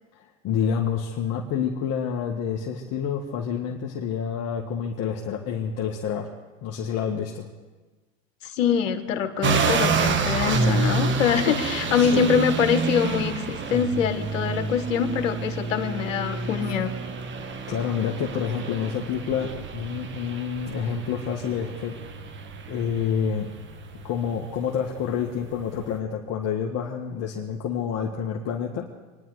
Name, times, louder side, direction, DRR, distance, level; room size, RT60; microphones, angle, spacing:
voice 1, 0.1-6.3 6.6-7.5 11.9-12.3 17.4-22.0 22.7-23.5 24.0-28.8, left 7 dB, 45° left, 0 dB, 1.8 m, -28 dB
voice 2, 8.4-17.0, left 7 dB, 90° left, 9 dB, 1.5 m, -24 dB
sound 1, 9.4-25.9, right 4 dB, 30° right, 1.4 m, -29 dB
26.5 x 11.0 x 4.9 m, 1.3 s
supercardioid pair, 110°, 38 cm